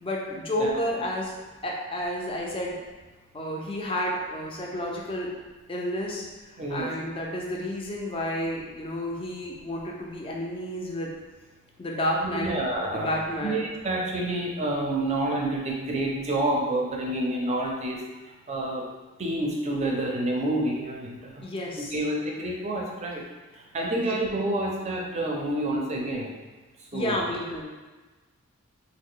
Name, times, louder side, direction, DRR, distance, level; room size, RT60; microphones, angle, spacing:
voice 1, 0.0-1.3 1.6-2.8 3.3-5.3 5.7-6.3 6.5-11.1 11.8-12.6 12.9-13.6 21.4-21.9 24.0-24.1 26.9-27.6, equal, 25° left, -2 dB, 0.5 m, -30 dB
voice 2, 6.6-6.9 12.2-13.1 13.4-18.0 18.5-18.8 19.2-21.4 21.8-23.2 23.7-26.3 26.9-27.2, right 1 dB, 30° right, -1 dB, 0.5 m, -28 dB
3.1 x 2.1 x 3.6 m, 1.2 s
head